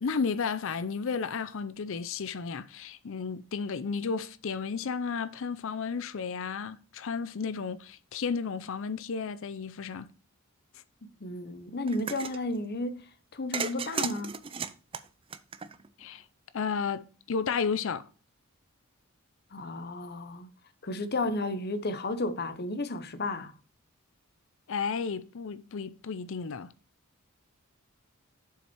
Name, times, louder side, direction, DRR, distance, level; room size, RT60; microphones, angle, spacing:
voice 1, 0.0-10.1 16.0-16.2 16.5-18.1 24.7-26.7, left 5 dB, 65° left, 0.5 m, -33 dB
voice 2, 11.2-13.0 13.3-14.3 19.5-20.5 20.8-23.5, left 2 dB, 45° left, 0.9 m, -33 dB
sound 1, 11.9-12.4 13.5-16.0, right 6 dB, 25° right, 0.5 m, -35 dB
7.4 x 5.7 x 4.5 m
head